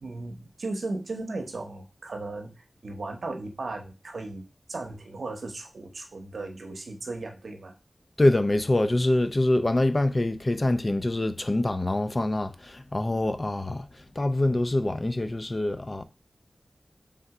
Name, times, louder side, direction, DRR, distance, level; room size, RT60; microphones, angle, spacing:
voice 1, 0.0-7.7, right 2 dB, 85° right, 0.8 m, -36 dB
voice 2, 8.2-13.9 14.2-16.0, left 1 dB, 40° left, 0.5 m, -25 dB
3.5 x 2.7 x 4.7 m
wide cardioid pair, 50°, 0 cm